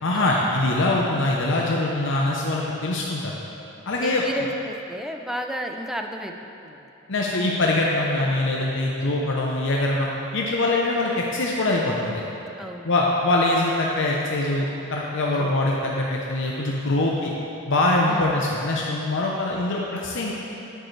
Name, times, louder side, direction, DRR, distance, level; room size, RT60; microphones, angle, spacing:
voice 1, 0.0-3.3 3.9-4.2 7.1-10.1 10.3-12.2 12.8-17.3 17.7-20.3, left 2 dB, 65° left, -2 dB, 0.7 m, -23 dB
voice 2, 4.0-6.3 6.6-6.9 12.6-12.9 15.3-15.6 18.1-18.4, equal, ahead, 3 dB, 0.4 m, -33 dB
10.0 x 8.6 x 3.2 m, 2.9 s
head